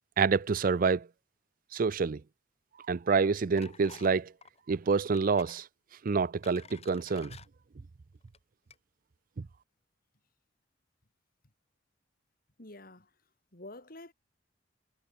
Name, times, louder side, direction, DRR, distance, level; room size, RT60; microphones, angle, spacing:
voice 1, 0.2-1.1 1.7-2.2 2.9-4.3 4.7-5.7 6.0-7.4, right 5 dB, 50° right, 0.5 m, -27 dB
sound 1, 3.6-4.1 4.4-4.6 5.1-5.6 6.1-7.5 8.2-8.4 8.7-8.8, left 6 dB, 35° left, 3.7 m, -52 dB
voice 2, 12.6-13.1 13.5-14.1, left 2 dB, 50° left, 3.9 m, -48 dB
head